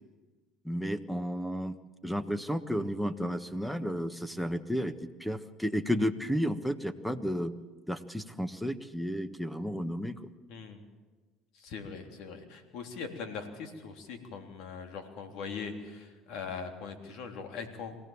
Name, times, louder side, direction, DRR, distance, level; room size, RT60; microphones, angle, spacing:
voice 1, 0.6-1.8 2.0-7.5 7.9-10.3, equal, 5° left, 11 dB, 1.4 m, -32 dB
voice 2, 10.5-10.8 11.5-18.0, left 5 dB, 70° left, 5 dB, 3.4 m, -41 dB
24.0 x 17.0 x 7.4 m, 1.3 s
supercardioid pair, 85°, 0 cm